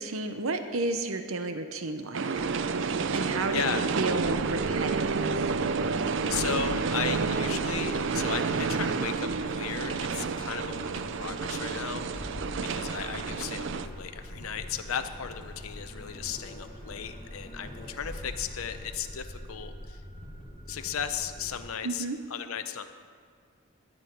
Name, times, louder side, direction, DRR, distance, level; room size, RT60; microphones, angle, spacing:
voice 1, 0.0-2.5 3.1-3.6 4.0-5.5 21.8-22.2, right 2 dB, 85° right, 7 dB, 0.8 m, -32 dB
sound 1, 2.1-13.9, right 5 dB, 60° right, 0.4 m, -30 dB
sound 2, 2.3-19.0, left 1 dB, 20° right, 2.7 m, -49 dB
voice 2, 3.2-3.9 6.3-12.3 12.6-20.0 20.7-22.9, left 7 dB, 85° left, 9 dB, 0.6 m, -36 dB
sound 3, 4.2-21.7, equal, 35° left, 1.7 m, -44 dB
12.5 x 5.5 x 9.2 m, 2.1 s
head